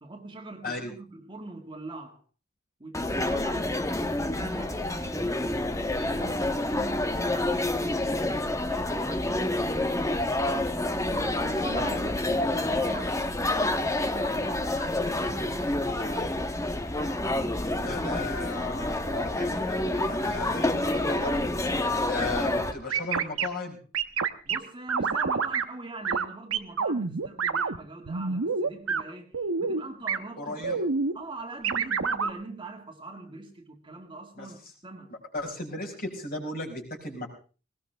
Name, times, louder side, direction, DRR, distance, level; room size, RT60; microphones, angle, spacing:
voice 1, 0.0-2.2 2.8-10.4 11.2-16.4 24.4-30.8 31.1-35.1, right 2 dB, 25° right, 2.0 m, -43 dB
sound 1, 2.9-22.7, left 1 dB, 15° left, 1.2 m, -28 dB
voice 2, 17.8-21.5 22.0-23.8 30.4-30.8 34.4-34.5 35.1-37.3, left 2 dB, 45° left, 5.1 m, -35 dB
sound 2, 22.9-23.5 23.9-24.6 24.9-25.6 26.1-26.3 26.5-27.8 28.1-29.0 29.3-29.8 30.1-30.2 30.6-31.1 31.6-32.3, right 5 dB, 85° right, 1.0 m, -27 dB
19.5 x 19.0 x 3.4 m
head